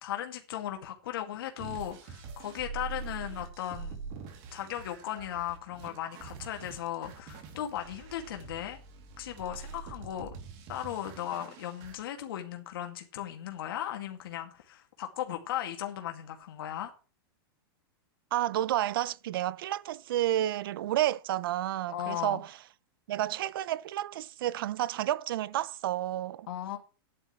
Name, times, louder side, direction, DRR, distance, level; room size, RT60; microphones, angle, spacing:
voice 1, 0.0-4.0 4.5-8.8 9.2-10.3 10.7-16.9 21.9-22.4 26.5-26.8, left 11 dB, 65° left, 2.3 m, -37 dB
sound 1, 1.6-12.0, right 5 dB, 35° right, 2.9 m, -44 dB
voice 2, 18.3-22.5 23.1-26.5, right 13 dB, 65° right, 0.6 m, -30 dB
14.0 x 11.0 x 3.2 m
supercardioid pair, 170°, 13 cm